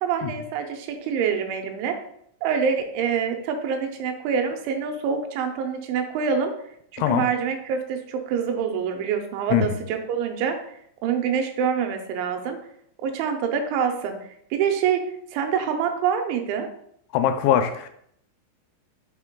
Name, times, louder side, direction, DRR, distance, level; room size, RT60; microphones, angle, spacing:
voice 1, 0.0-2.0 2.4-6.5 6.9-10.7 11.0-12.6 13.0-14.2 14.5-15.0 15.3-16.7, right 7 dB, 90° right, 5 dB, 3.1 m, -26 dB
voice 2, 17.1-17.9, left 10 dB, 90° left, 8 dB, 2.9 m, -21 dB
6.9 x 4.5 x 3.7 m, 0.69 s
omnidirectional pair, 5.2 m